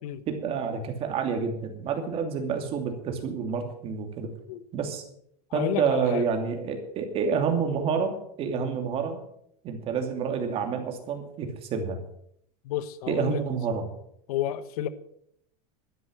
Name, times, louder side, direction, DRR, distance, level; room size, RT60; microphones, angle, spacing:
voice 1, 0.3-4.3 4.7-5.0 5.5-9.2 9.6-12.0 13.1-13.9, right 6 dB, 30° right, 2.8 m, -28 dB
voice 2, 5.5-6.3 8.6-8.7 12.6-13.4 13.7-13.8 14.3-14.9, left 11 dB, 70° left, 1.2 m, -31 dB
13.0 x 10.0 x 7.7 m
supercardioid pair, 165°, 20 cm